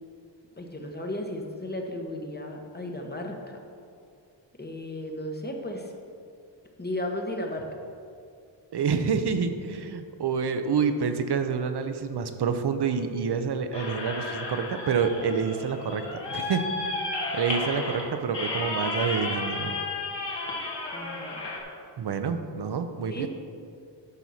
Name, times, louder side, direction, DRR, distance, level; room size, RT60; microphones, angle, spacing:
voice 1, 0.6-3.6 4.6-5.9 6.8-7.7 20.9-21.4 23.1-23.3, left 1 dB, 20° left, 2 dB, 1.1 m, -34 dB
voice 2, 8.7-16.6 17.3-19.7 22.0-23.3, right 6 dB, 65° right, 8 dB, 0.7 m, -28 dB
sound 1, 13.7-21.6, left 2 dB, 65° left, 1.7 m, -33 dB
10.5 x 6.0 x 4.1 m, 2.4 s
wide cardioid pair, 95°, 44 cm